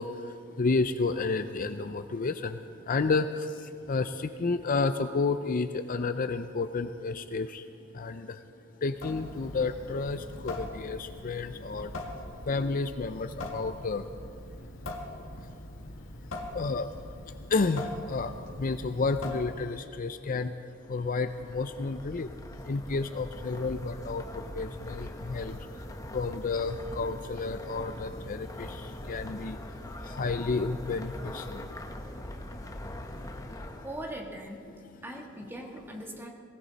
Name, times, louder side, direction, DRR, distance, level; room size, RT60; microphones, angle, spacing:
voice 1, 0.0-7.7 7.9-8.4 8.8-11.9 12.5-14.3 16.5-16.9 17.2-22.3 22.6-25.8 26.1-32.4 32.7-33.0, left 3 dB, 45° left, 10 dB, 0.5 m, -31 dB
Water tap faucet / Sink (filling or washing) / Drip, 8.9-19.9, left 1 dB, 85° left, 2.1 m, -42 dB
sound 1, 20.7-34.2, left 1 dB, 15° left, 1.0 m, -42 dB
voice 2, 33.8-34.7 35.0-36.3, right 1 dB, 10° right, 0 dB, 1.8 m, -40 dB
19.5 x 17.5 x 4.1 m, 2.3 s
head